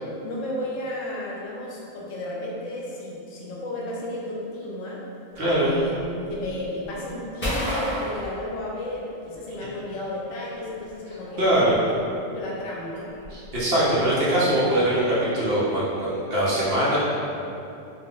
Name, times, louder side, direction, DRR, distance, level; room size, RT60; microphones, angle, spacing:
voice 1, 0.2-5.0 5.6-6.0 6.3-11.9 12.2-13.1, left 1 dB, 80° left, -4 dB, 1.0 m, -33 dB
sound 1, 5.3-9.2 9.5-15.3, equal, 15° left, 0.5 m, -35 dB
voice 2, 5.4-5.7 11.4-11.7 13.3-17.0, right 1 dB, 55° right, -9 dB, 0.8 m, -22 dB
2.5 x 2.4 x 3.4 m, 2.7 s
omnidirectional pair, 1.3 m